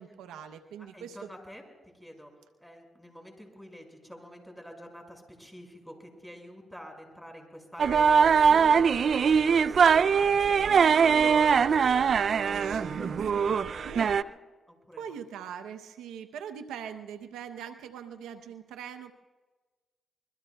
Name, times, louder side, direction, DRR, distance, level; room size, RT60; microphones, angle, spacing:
voice 1, 0.0-1.3 10.6-11.3 11.6-11.7 12.6-14.1 15.0-19.1, right 8 dB, 90° right, 8 dB, 0.8 m, -42 dB
voice 2, 0.9-1.6 2.0-2.3 2.6-12.1 12.4-14.4 14.7-15.2, equal, ahead, 2 dB, 5.4 m, -46 dB
sound 1, 7.8-14.2, right 6 dB, 60° right, 0.4 m, -22 dB
26.0 x 22.0 x 2.3 m, 1.3 s
supercardioid pair, 60°, 0 cm